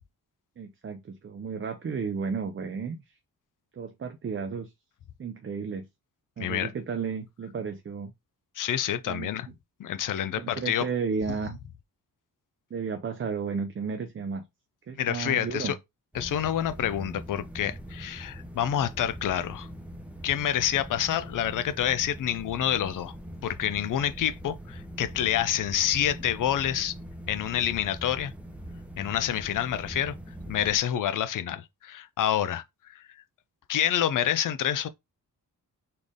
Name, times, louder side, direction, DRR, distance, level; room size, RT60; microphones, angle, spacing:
voice 1, 0.6-3.0 3.7-4.7 5.2-5.8 6.4-8.1 9.1-9.3 10.4-11.6 12.7-14.4 14.9-15.7, right 5 dB, 35° right, 0.6 m, -33 dB
voice 2, 6.4-6.7 8.6-9.5 9.8-10.9 15.0-15.7 16.1-19.7 20.2-23.1 23.4-26.9 27.3-28.3 29.0-30.1 30.5-33.0 33.7-34.9, left 10 dB, 60° left, 0.6 m, -28 dB
sound 1, 16.1-30.8, equal, 5° right, 0.9 m, -42 dB
4.3 x 3.3 x 3.6 m
wide cardioid pair, 150°, 36 cm